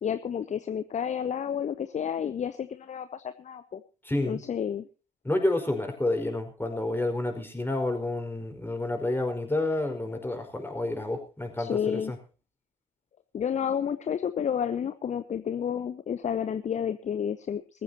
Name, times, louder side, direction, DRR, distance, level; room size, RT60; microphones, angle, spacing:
voice 1, 0.0-3.8 4.3-4.9 11.6-12.1 13.3-17.8, left 8 dB, 35° left, 13 dB, 0.8 m, -30 dB
voice 2, 4.0-4.4 5.2-12.2, left 2 dB, 10° left, 5 dB, 4.9 m, -29 dB
21.0 x 14.5 x 2.9 m, 0.34 s
figure-of-eight pair, 45°, 20 cm